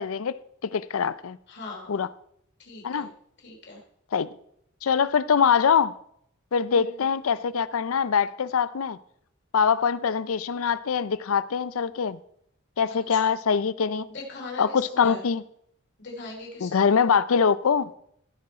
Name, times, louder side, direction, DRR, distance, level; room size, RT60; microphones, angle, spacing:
voice 1, 0.0-1.4 1.9-2.1 2.8-3.1 4.1-4.3 4.8-5.9 6.5-9.0 9.5-12.2 12.8-14.1 14.6-15.4 16.6-17.9, left 6 dB, 75° left, 0.5 m, -23 dB
voice 2, 1.5-1.9 2.6-3.1 3.4-3.8 6.7-7.0 13.1-13.2 14.1-15.2 16.0-16.9, left 2 dB, 55° left, 3.0 m, -39 dB
15.0 x 6.2 x 4.3 m
head